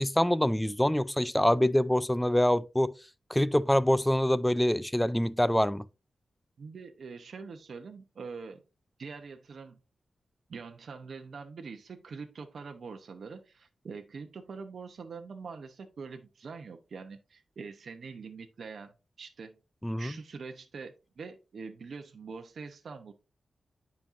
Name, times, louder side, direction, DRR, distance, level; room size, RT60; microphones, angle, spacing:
voice 1, 0.0-2.9 3.3-5.9 19.8-20.1, left 1 dB, 5° left, 0.4 m, -25 dB
voice 2, 6.6-8.6 9.0-9.8 10.5-18.9 19.2-19.5 20.0-23.1, right 5 dB, 65° right, 0.8 m, -44 dB
9.8 x 5.3 x 2.6 m
wide cardioid pair, 100°, 0 cm